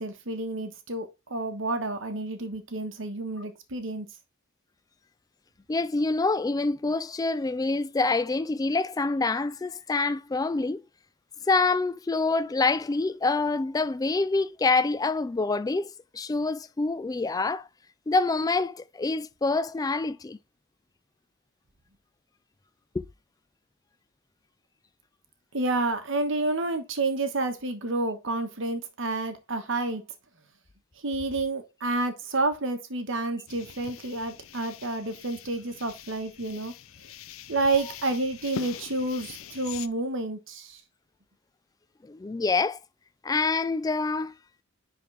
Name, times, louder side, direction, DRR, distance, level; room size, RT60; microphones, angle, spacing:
voice 1, 0.0-4.1 25.5-30.0 31.0-36.7 37.5-40.8, right 2 dB, 65° right, 1.2 m, -29 dB
voice 2, 5.7-10.8 11.5-17.7 18.1-20.4 22.9-23.0 42.0-42.8 43.2-44.3, left 3 dB, 20° left, 0.3 m, -26 dB
sound 1, 33.5-39.9, left 8 dB, 75° left, 0.5 m, -43 dB
10.0 x 3.7 x 3.4 m
head